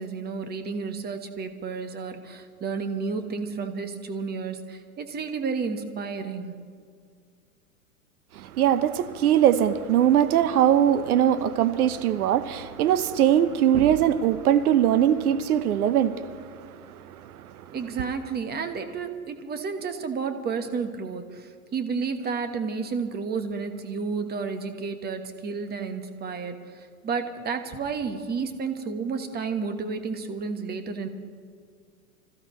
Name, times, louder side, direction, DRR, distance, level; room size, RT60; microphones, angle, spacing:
voice 1, 0.0-6.6 17.7-31.1, right 5 dB, 20° right, 1.3 m, -31 dB
voice 2, 8.3-17.5, right 10 dB, 75° right, 0.9 m, -22 dB
26.0 x 15.0 x 3.2 m
hypercardioid pair, 105°, 45 cm